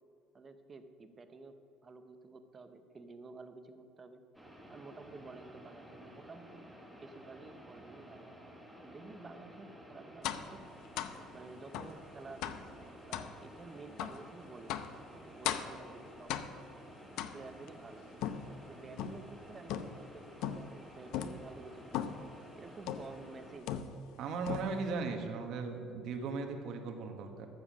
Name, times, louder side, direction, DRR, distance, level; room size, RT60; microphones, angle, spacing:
voice 1, 0.3-1.5 1.8-4.2 4.7-6.7 7.0-8.3 8.8-10.7 11.3-14.8 15.1-16.5 17.3-18.3 18.7-21.8 22.6-24.0, right 3 dB, 20° right, 8 dB, 0.7 m, -51 dB
sound 1, 4.3-23.6, equal, ahead, 1.1 m, -53 dB
sound 2, 10.2-10.5 11.0-11.2 11.7-12.0 12.4-12.7 13.1-13.3 14.0-14.2 14.7-15.0 15.4-15.8 16.3-16.7 17.2-17.7 18.2-19.3 19.7-20.1 20.4-20.8 21.1-21.4 21.9-22.3 22.9-23.2 23.7-24.2 24.5-24.9, left 9 dB, 65° left, 0.6 m, -38 dB
voice 2, 24.2-27.5, right 4 dB, 50° right, 4 dB, 1.3 m, -37 dB
13.5 x 7.2 x 6.2 m, 2.6 s
cardioid pair, 170°, 0 cm